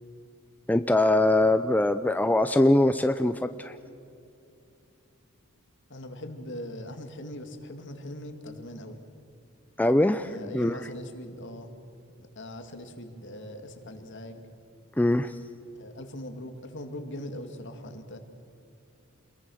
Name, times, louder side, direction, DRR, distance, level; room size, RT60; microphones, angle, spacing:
voice 1, 0.7-3.8 9.8-10.3 10.5-10.8 15.0-15.4, left 1 dB, 10° left, 9 dB, 0.5 m, -22 dB
voice 2, 5.9-9.0 10.2-11.7 12.2-14.4 15.8-18.2, left 1 dB, 55° left, 6 dB, 2.3 m, -40 dB
28.0 x 22.0 x 6.4 m, 2.7 s
head